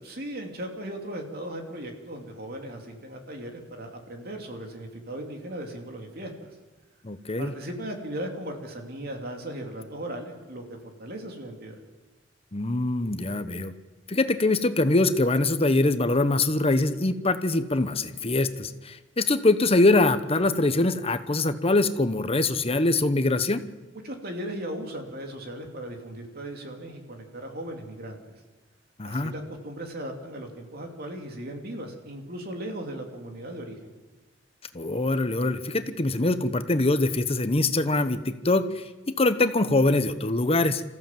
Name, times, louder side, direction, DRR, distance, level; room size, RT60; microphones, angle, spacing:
voice 1, 0.0-6.5 7.4-11.8 24.0-28.4 29.0-33.9, right 1 dB, 55° right, 3 dB, 3.0 m, -37 dB
voice 2, 7.0-7.5 12.5-13.7 14.1-23.6 29.0-29.3 34.7-38.9 39.2-40.8, left 2 dB, 30° left, 11 dB, 1.0 m, -23 dB
27.0 x 14.5 x 7.6 m, 1.2 s
head